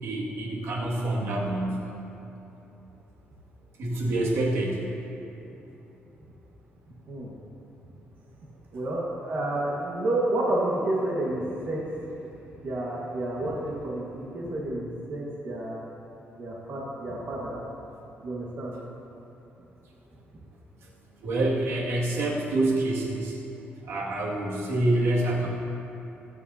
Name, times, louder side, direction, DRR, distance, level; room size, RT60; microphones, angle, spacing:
voice 1, 0.0-1.9 3.8-4.8 21.2-23.4 23.8-25.5, right 1 dB, 80° right, -4 dB, 2.1 m, -27 dB
voice 2, 8.7-11.9 12.6-15.8 16.4-17.6 18.2-18.8, right 1 dB, 50° right, -4 dB, 1.6 m, -30 dB
21.0 x 9.1 x 2.8 m, 2.9 s
cardioid pair, 165°, 4 cm